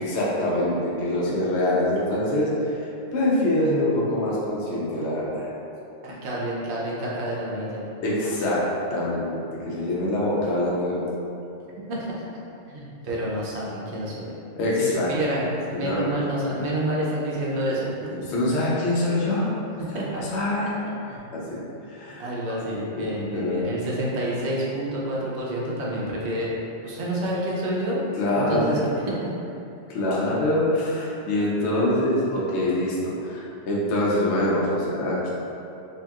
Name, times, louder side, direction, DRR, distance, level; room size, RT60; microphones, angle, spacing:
voice 1, 0.0-2.8 3.1-5.5 8.0-8.7 8.9-11.1 14.6-15.1 15.7-16.2 18.2-19.5 20.0-20.7 21.3-21.6 21.9-22.3 22.7-23.1 23.3-23.6 28.2-28.9 29.9-35.3, left 1 dB, 75° left, -6 dB, 0.9 m, -24 dB
voice 2, 6.0-7.8 11.9-12.2 12.7-14.3 14.8-18.1 19.8-20.3 20.8-21.2 22.2-26.5 26.8-28.0 28.3-28.8 29.1-29.3, right 1 dB, 70° right, -5 dB, 0.9 m, -28 dB
2.8 x 2.7 x 2.3 m, 2.7 s
omnidirectional pair, 1.2 m